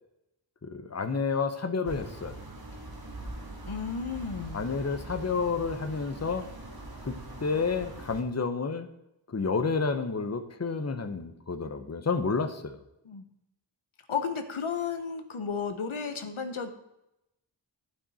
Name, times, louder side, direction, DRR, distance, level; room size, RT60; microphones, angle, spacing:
voice 1, 0.6-2.4 4.5-6.4 7.0-8.9 9.3-12.8, left 4 dB, 35° left, 8 dB, 0.8 m, -30 dB
sound 1, 1.8-8.2, right 2 dB, 50° right, 1.7 m, -42 dB
voice 2, 3.7-4.7 13.0-13.2 14.1-16.7, left 6 dB, 85° left, 7 dB, 1.0 m, -33 dB
11.0 x 6.0 x 4.1 m, 0.86 s
wide cardioid pair, 50°, 48 cm